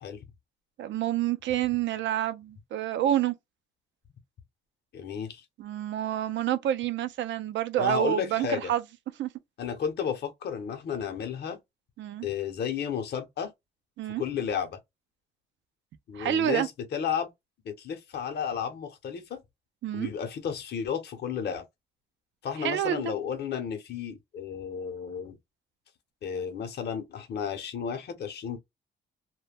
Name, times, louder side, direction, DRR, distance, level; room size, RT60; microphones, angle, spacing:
voice 1, 0.8-3.3 5.6-8.8 9.2-9.3 12.0-12.3 14.0-14.2 16.1-16.7 19.8-20.1 22.6-23.1, right 11 dB, 70° right, 0.5 m, -28 dB
voice 2, 4.9-5.4 7.8-8.7 9.6-11.6 12.2-13.5 14.2-14.8 16.1-17.3 17.6-19.4 19.9-21.6 22.4-25.4 26.2-28.6, left 7 dB, 55° left, 0.7 m, -33 dB
2.2 x 2.1 x 3.3 m
cardioid pair, 90°, 20 cm